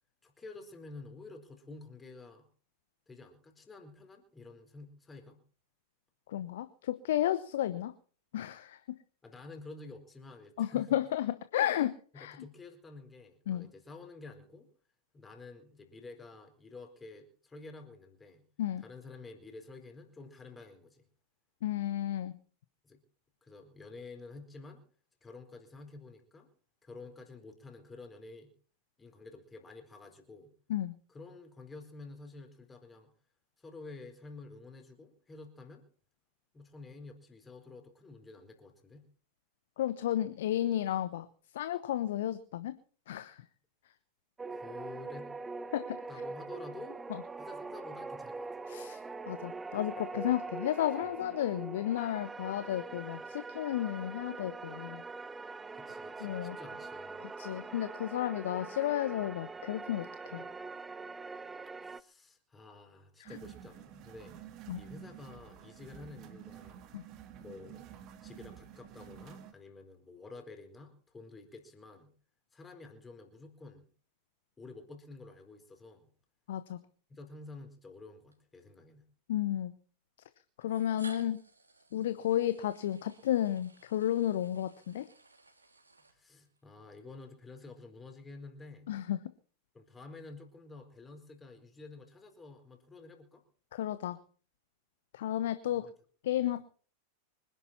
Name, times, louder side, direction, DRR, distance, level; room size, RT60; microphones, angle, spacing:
voice 1, 0.2-2.5 3.1-5.4 9.2-11.0 12.1-14.7 15.1-18.4 18.8-21.0 22.8-23.0 23.4-24.8 25.2-26.5 26.8-28.5 29.0-30.5 31.1-33.1 33.6-35.9 36.5-39.0 44.5-45.4 46.1-47.0 47.4-48.5 55.7-57.2 61.8-64.4 64.8-66.9 67.4-67.9 68.2-72.1 72.5-73.9 74.6-76.1 77.1-79.0 86.1-88.9 89.7-93.4 95.7-95.9 96.4-96.5, left 3 dB, 15° left, 4 dB, 4.3 m, -50 dB
voice 2, 6.3-7.9 8.3-8.8 10.6-12.4 13.5-13.7 18.6-18.8 21.6-22.3 30.7-30.9 39.8-41.3 41.5-42.7 43.1-43.4 45.7-46.0 47.1-47.2 48.7-49.0 49.3-55.0 56.2-56.6 57.4-60.1 60.3-60.5 63.2-63.3 64.7-64.8 66.9-67.0 76.5-76.8 79.3-79.7 80.6-81.4 81.9-85.1 88.9-89.2 93.7-94.2 95.1-95.9 96.2-96.6, left 12 dB, 55° left, 13 dB, 1.0 m, -32 dB
sound 1, 44.4-62.0, right 3 dB, 10° right, 0.7 m, -43 dB
sound 2, 63.2-69.5, right 9 dB, 35° right, 2.1 m, -50 dB
sound 3, 77.1-77.3 78.3-78.4 79.6-79.7 80.6-86.6, right 3 dB, 80° right, 3.4 m, -56 dB
25.0 x 11.0 x 4.3 m, 0.43 s
figure-of-eight pair, 90°, 0 cm